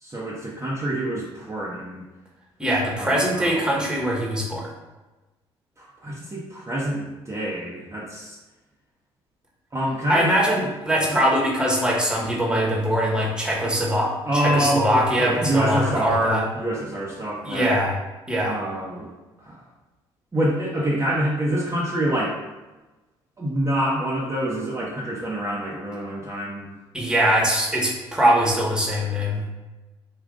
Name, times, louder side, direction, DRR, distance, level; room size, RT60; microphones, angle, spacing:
voice 1, 0.0-2.0 3.0-3.7 5.8-8.4 9.7-10.3 10.6-10.7 11.1-11.2 14.3-17.8 18.4-19.1 19.4-19.6 20.3-22.4 23.4-26.7, right 1 dB, 25° right, -6 dB, 0.9 m, -26 dB
voice 2, 2.6-4.7 10.1-16.4 17.4-17.9 18.3-18.6 26.9-29.4, equal, 5° right, -3 dB, 1.2 m, -22 dB
3.7 x 2.5 x 3.7 m, 1.1 s
supercardioid pair, 65°, 12 cm